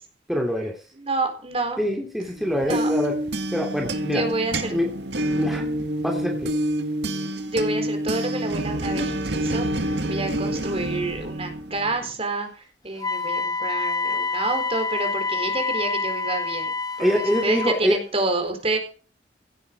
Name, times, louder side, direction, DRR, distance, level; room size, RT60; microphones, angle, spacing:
voice 1, 0.3-0.7 1.8-3.2 3.5-4.2 4.7-4.9 5.4-5.6 6.0-6.5 17.0-18.0, equal, ahead, 0 dB, 2.9 m, -24 dB
voice 2, 1.0-1.8 2.6-2.9 4.1-4.7 7.5-16.7 17.0-18.8, right 2 dB, 35° right, 6 dB, 4.1 m, -28 dB
sound 1, 2.4-12.0, right 1 dB, 70° right, 2.0 m, -27 dB
Wind instrument woodwind instrument, 13.0-17.8, left 4 dB, 20° left, 1.2 m, -27 dB
16.5 x 11.0 x 5.3 m, 0.38 s
head